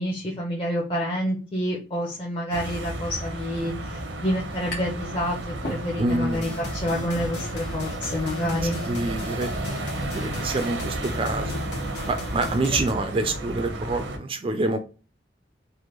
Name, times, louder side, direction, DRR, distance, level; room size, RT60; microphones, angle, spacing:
voice 1, 0.0-8.8 12.6-12.8, equal, 30° left, -3 dB, 0.6 m, -28 dB
sound 1, 2.5-14.2, right 1 dB, 85° right, 0.7 m, -32 dB
sound 2, 4.7-5.1 5.4-6.3, left 1 dB, 85° left, 1.3 m, -37 dB
voice 2, 6.0-6.4 8.9-11.6 12.1-14.8, right 2 dB, 30° right, 7 dB, 0.3 m, -27 dB
sound 3, 6.3-12.9, left 1 dB, 65° left, 0.8 m, -37 dB
3.3 x 2.2 x 3.0 m, 0.33 s
head